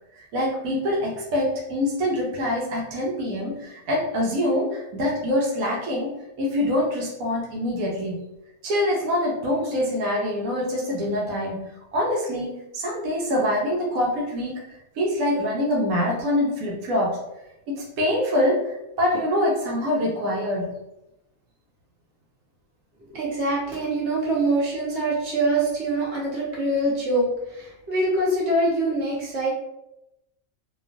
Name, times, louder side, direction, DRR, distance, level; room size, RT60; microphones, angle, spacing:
voice 1, 0.2-8.2 8.6-14.6 15.0-17.2 17.7-20.7, left 1 dB, 85° right, -3 dB, 1.1 m, -25 dB
voice 2, 23.0-29.5, right 2 dB, 55° right, -4 dB, 1.1 m, -24 dB
2.9 x 2.4 x 2.4 m, 0.89 s
omnidirectional pair, 1.4 m